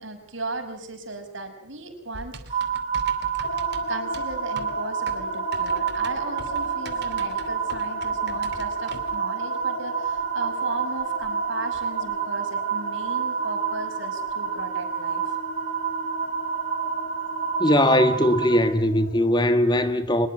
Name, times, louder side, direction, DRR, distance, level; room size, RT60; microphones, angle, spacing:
voice 1, 0.0-2.7 3.9-15.4, right 2 dB, 70° right, 5.9 m, -36 dB
Typing, 2.1-9.2, right 3 dB, 55° right, 2.8 m, -42 dB
sound 1, 2.5-18.6, right 7 dB, 30° right, 4.2 m, -28 dB
sound 2, 3.4-19.3, left 3 dB, 75° left, 2.1 m, -38 dB
voice 2, 17.6-20.3, left 1 dB, 20° left, 1.6 m, -20 dB
24.5 x 21.5 x 7.7 m
head